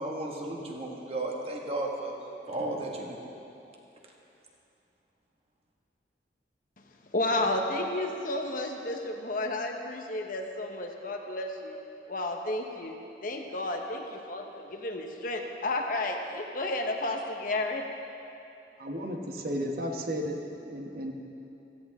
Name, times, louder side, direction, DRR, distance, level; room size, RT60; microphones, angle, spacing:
voice 1, 0.0-2.1 2.5-3.2, right 2 dB, 35° right, -1 dB, 1.7 m, -34 dB
voice 2, 7.1-11.8 12.1-17.9, left 2 dB, 50° left, 3 dB, 1.1 m, -32 dB
voice 3, 18.8-20.4 20.6-21.1, equal, 55° right, 2 dB, 1.2 m, -33 dB
16.5 x 14.5 x 3.7 m, 2.8 s
head